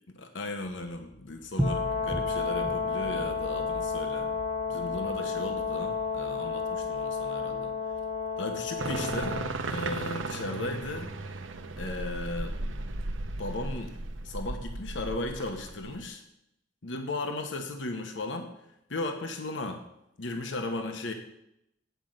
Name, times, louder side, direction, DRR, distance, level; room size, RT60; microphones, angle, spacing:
voice 1, 0.1-4.3 4.7-7.7 8.4-9.4 9.7-11.1 11.8-12.5 13.4-13.9 14.2-16.2 16.8-18.5 18.9-19.8 20.2-21.1, left 2 dB, 70° left, 5 dB, 1.0 m, -36 dB
sound 1, 0.6-10.8, equal, 5° right, 0.7 m, -40 dB
Brass instrument, 1.6-9.5, left 5 dB, 45° left, 1.3 m, -32 dB
sound 2, 8.8-16.1, right 2 dB, 85° right, 0.8 m, -36 dB
9.2 x 5.2 x 7.6 m, 0.81 s
head